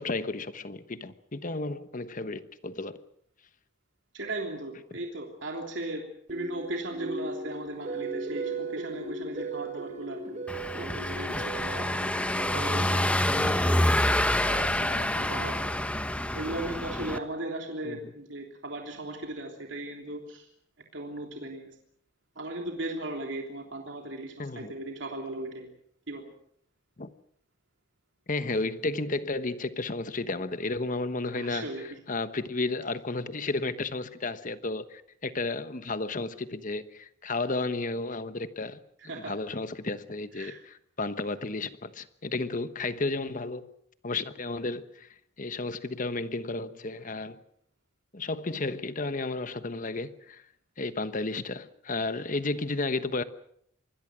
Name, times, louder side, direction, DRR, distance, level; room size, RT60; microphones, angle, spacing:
voice 1, 0.0-3.0 17.8-18.0 24.4-24.7 27.0-27.1 28.3-31.7 32.1-38.8 39.3-43.7 44.0-45.1 45.4-47.4 48.1-50.4 50.8-53.2, left 3 dB, 40° left, 1.2 m, -32 dB
voice 2, 4.1-6.0 6.3-10.2 10.7-12.2 12.5-14.0 14.4-15.5 16.3-20.5 20.9-21.7 22.3-25.7 26.1-26.2 31.3-32.0 39.0-39.3 40.3-40.6, right 2 dB, 65° right, 3.3 m, -37 dB
sound 1, 6.3-16.4, right 3 dB, 35° right, 3.3 m, -39 dB
Car passing by / Engine, 10.5-17.2, left 1 dB, 5° left, 1.0 m, -27 dB
25.5 x 21.5 x 6.2 m
head